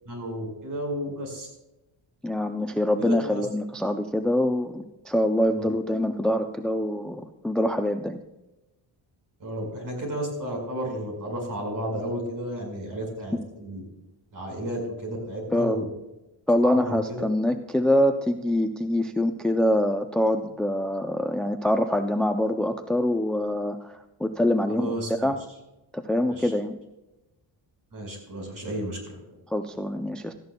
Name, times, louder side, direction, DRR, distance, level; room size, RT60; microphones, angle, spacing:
voice 1, 0.1-1.5 3.0-3.5 5.6-5.7 9.4-13.8 14.3-15.9 16.6-17.2 24.7-25.3 26.3-26.5 27.9-29.2, right 1 dB, 50° right, 1 dB, 5.1 m, -32 dB
voice 2, 2.2-8.2 15.5-15.8 16.5-24.9 25.2-25.4 25.9-26.8 29.5-30.3, left 1 dB, ahead, 7 dB, 0.4 m, -25 dB
17.0 x 14.0 x 2.2 m, 0.97 s
wide cardioid pair, 170°, 41 cm